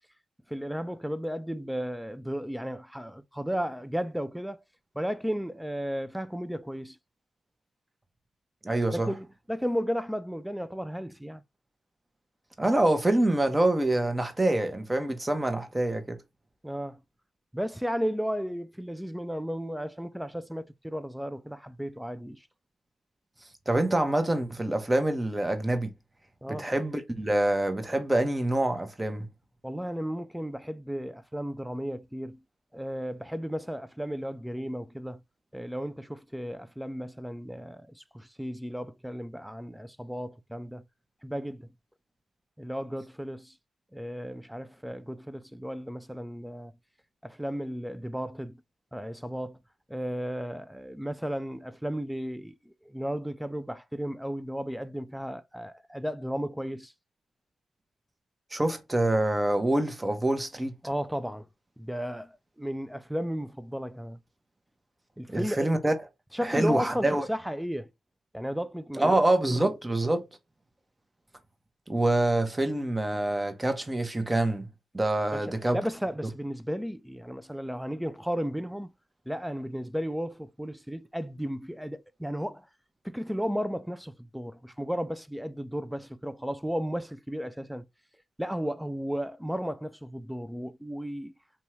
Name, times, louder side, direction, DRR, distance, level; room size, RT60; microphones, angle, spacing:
voice 1, 0.5-4.6 5.0-7.0 8.9-11.4 16.6-17.0 17.5-22.4 26.4-26.7 29.6-32.4 32.7-35.2 35.5-40.8 41.2-41.7 42.6-43.5 43.9-46.7 47.2-48.6 48.9-49.6 49.9-56.9 60.8-61.5 61.8-64.2 65.2-65.7 66.3-67.9 68.3-69.2 69.5-69.6 70.1-70.2 75.3-75.5 75.7-78.9 79.3-82.7 83.0-87.9 88.4-91.3, equal, 5° right, 0.4 m, -34 dB
voice 2, 8.6-9.1 12.6-16.2 23.7-25.9 26.5-29.3 58.5-60.7 65.3-65.9 66.4-67.3 69.0-70.2 71.9-74.7 74.9-75.8, right 1 dB, 20° right, 0.7 m, -26 dB
2.7 x 2.3 x 3.0 m
hypercardioid pair, 40°, 0 cm